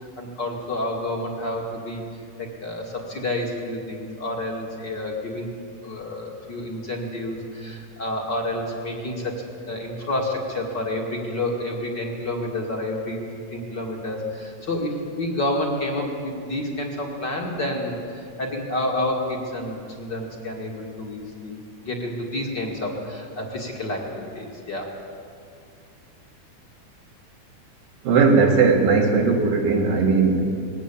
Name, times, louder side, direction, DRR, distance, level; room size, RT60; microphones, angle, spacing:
voice 1, 0.2-5.5 5.8-13.2 13.5-21.5 21.8-25.0, left 1 dB, 35° left, 0 dB, 2.6 m, -29 dB
voice 2, 28.0-30.5, right 4 dB, 80° right, 0 dB, 3.7 m, -18 dB
21.0 x 17.0 x 8.6 m, 2.3 s
omnidirectional pair, 3.9 m